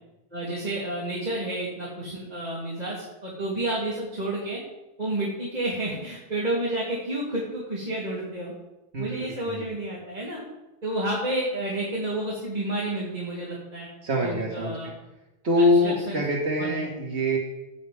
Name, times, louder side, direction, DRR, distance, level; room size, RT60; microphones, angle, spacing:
voice 1, 0.3-4.6 5.0-8.5 9.0-10.4 10.8-13.9 14.2-14.9 15.6-16.2 16.6-16.8, right 1 dB, 35° right, -7 dB, 2.8 m, -30 dB
voice 2, 8.9-9.7 14.0-14.9 15.4-17.4, left 1 dB, 70° right, -2 dB, 2.0 m, -25 dB
16.0 x 9.8 x 3.5 m, 0.99 s
omnidirectional pair, 1.2 m